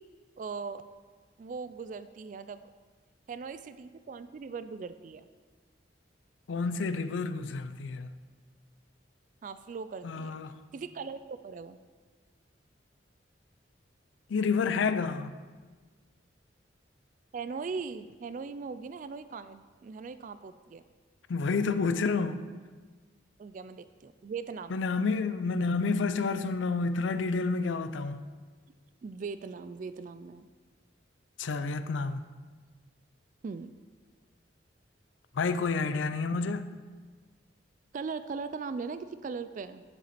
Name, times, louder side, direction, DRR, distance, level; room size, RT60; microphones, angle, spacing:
voice 1, 0.4-0.8 1.4-2.7 3.3-5.3 9.4-10.3 10.7-11.8 17.3-20.8 23.4-24.8 29.0-30.5 33.4-33.7 37.9-39.8, right 5 dB, 45° right, 0.3 m, -39 dB
voice 2, 6.5-8.1 10.0-10.6 14.3-15.4 21.3-22.4 24.7-28.2 31.4-32.2 35.3-36.7, left 4 dB, 85° left, 0.5 m, -29 dB
10.5 x 7.2 x 4.2 m
head